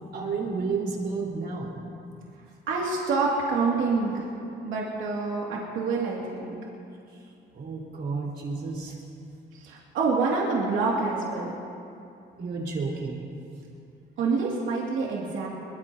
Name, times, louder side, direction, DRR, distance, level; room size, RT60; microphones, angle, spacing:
voice 1, 0.1-1.8 7.5-8.9 12.4-13.3, right 4 dB, 60° right, -3 dB, 4.4 m, -31 dB
voice 2, 2.7-4.3 4.6-6.6 9.5-11.5 14.2-15.5, right 4 dB, 85° right, -4 dB, 2.4 m, -27 dB
22.5 x 21.5 x 2.9 m, 2.7 s
cardioid pair, 90°, 20 cm